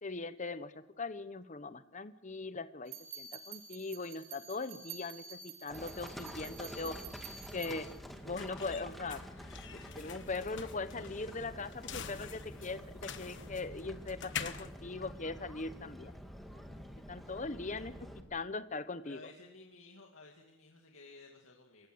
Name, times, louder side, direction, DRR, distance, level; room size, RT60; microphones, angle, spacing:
voice 1, 0.0-7.0 7.5-7.9 8.2-9.2 9.7-16.1 17.1-17.9 18.3-19.2, left 3 dB, 35° left, 13 dB, 1.0 m, -40 dB
sound 1, 2.9-8.0, right 6 dB, 80° right, 5.4 m, -49 dB
Livestock farm animals working animals, 5.7-18.2, equal, ahead, 2.0 m, -48 dB
sound 2, 7.3-15.9, left 8 dB, 60° left, 1.3 m, -47 dB
voice 2, 19.0-21.9, left 3 dB, 80° left, 1 dB, 2.4 m, -55 dB
27.5 x 16.0 x 7.9 m, 0.86 s
head